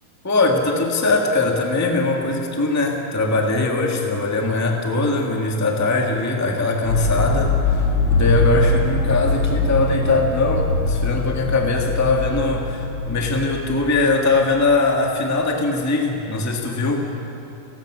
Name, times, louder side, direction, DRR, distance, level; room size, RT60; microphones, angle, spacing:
voice 1, 0.2-17.0, left 3 dB, 10° left, 1 dB, 1.0 m, -21 dB
sound 1, 6.8-15.0, left 2 dB, 55° left, 3.4 m, -22 dB
29.0 x 15.0 x 6.3 m, 3.0 s
omnidirectional pair, 3.8 m